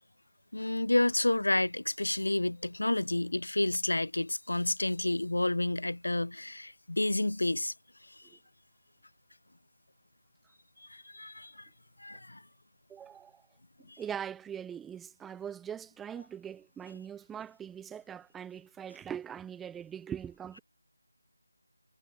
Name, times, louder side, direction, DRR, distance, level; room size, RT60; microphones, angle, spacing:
voice 1, 0.5-7.7 10.9-11.7 12.0-12.4 13.9-14.0, left 2 dB, 80° left, 0.4 m, -30 dB
voice 2, 12.9-13.4 14.0-20.6, right 8 dB, 5° right, 0.3 m, -41 dB
figure-of-eight pair, 165°, 0 cm